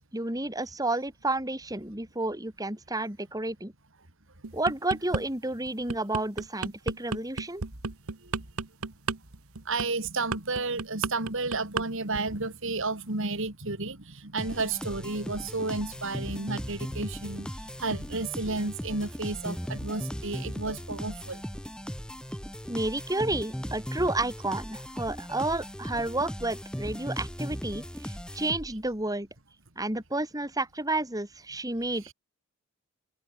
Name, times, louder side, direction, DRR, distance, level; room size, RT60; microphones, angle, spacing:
voice 1, 0.1-3.7 4.5-7.6 22.7-29.3 29.8-32.1, right 2 dB, 15° right, 4.1 m, -31 dB
sound 1, 4.4-5.2 5.7-11.9 12.1-12.4, right 4 dB, 75° right, 1.1 m, -32 dB
voice 2, 9.6-21.4 32.0-32.1, right 3 dB, 60° right, 3.2 m, -32 dB
sound 2, 14.4-28.9, equal, 5° left, 3.2 m, -38 dB
head